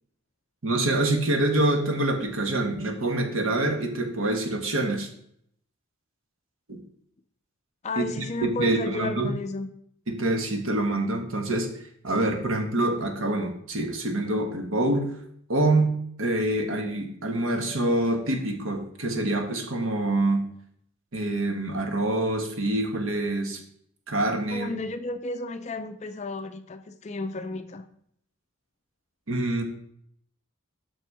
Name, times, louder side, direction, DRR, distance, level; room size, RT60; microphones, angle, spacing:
voice 1, 0.6-5.1 6.7-6.8 8.0-9.3 10.1-11.7 12.0-15.1 15.5-20.5 21.1-23.6 24.1-24.7 29.3-29.6, right 2 dB, 65° right, 4 dB, 1.2 m, -26 dB
voice 2, 7.8-9.7 24.5-27.8, left 3 dB, 30° left, 9 dB, 0.4 m, -33 dB
6.1 x 5.6 x 4.7 m, 0.68 s
head